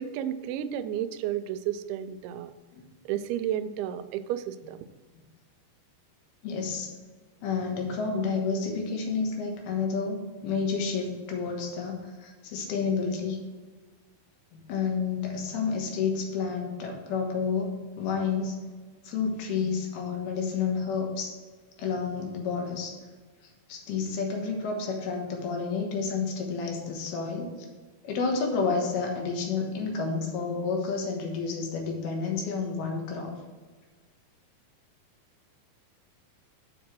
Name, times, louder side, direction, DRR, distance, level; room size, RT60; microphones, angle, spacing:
voice 1, 0.0-2.5 3.1-4.8, right 10 dB, 90° right, 12 dB, 2.5 m, -32 dB
voice 2, 6.4-6.9 7.4-13.4 14.5-18.6 19.0-21.3 21.8-22.9 23.7-27.5 28.0-33.3, left 5 dB, 80° left, 1 dB, 3.3 m, -30 dB
7.0 x 5.1 x 6.1 m, 1.4 s
omnidirectional pair, 4.4 m